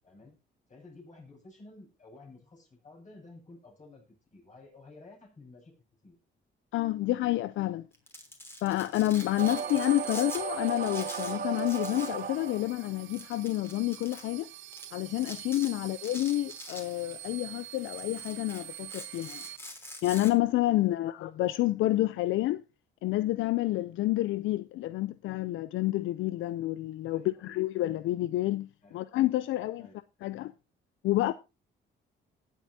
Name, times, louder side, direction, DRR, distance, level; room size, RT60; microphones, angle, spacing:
voice 1, 0.0-0.4 0.7-5.7 6.0-6.2 20.9-21.0 27.1-27.5 28.8-29.0 29.8-30.0, left 2 dB, 40° left, 7.5 m, -53 dB
voice 2, 6.7-7.9 8.6-14.5 14.9-19.4 20.0-22.6 23.0-28.7 28.9-29.9 30.2-30.5 31.0-31.3, left 16 dB, 80° left, 0.5 m, -29 dB
Domestic sounds home sounds, 7.9-10.4 10.7-12.2 12.5-12.6 13.1-14.2 14.7-14.8 15.2-15.7 16.0-17.3 17.6-20.3, left 1 dB, 10° left, 3.4 m, -45 dB
sound 1, 9.1-19.6, right 14 dB, 80° right, 0.5 m, -45 dB
sound 2, 9.4-12.9, right 6 dB, 45° right, 1.2 m, -36 dB
19.0 x 8.3 x 2.7 m
cardioid pair, 90°, 20 cm